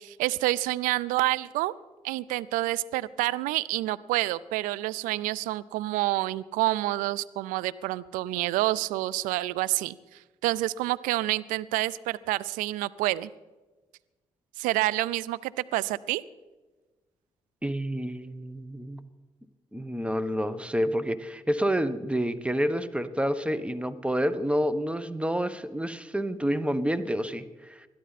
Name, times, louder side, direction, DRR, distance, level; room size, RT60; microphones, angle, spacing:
voice 1, 0.0-1.7 2.0-10.0 10.4-13.3 14.6-16.2, right 17 dB, 85° right, 18 dB, 0.4 m, -28 dB
voice 2, 17.6-19.1 19.7-27.9, equal, 10° right, 13 dB, 1.2 m, -29 dB
21.0 x 12.5 x 4.2 m, 1.2 s
hypercardioid pair, 45°, 13 cm